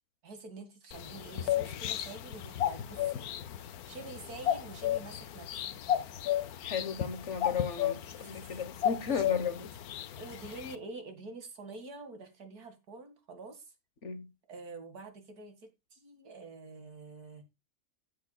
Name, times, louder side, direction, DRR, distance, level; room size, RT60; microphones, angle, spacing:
voice 1, 0.2-3.3 3.9-5.8 8.2-8.6 9.0-9.4 10.2-13.7 14.5-17.4, right 3 dB, 85° right, 2.7 m, -47 dB
sound 1, 0.9-10.8, left 11 dB, 85° left, 1.3 m, -34 dB
voice 2, 6.6-9.7 14.0-14.3, left 6 dB, 55° left, 1.5 m, -34 dB
14.0 x 8.3 x 2.3 m
omnidirectional pair, 1.6 m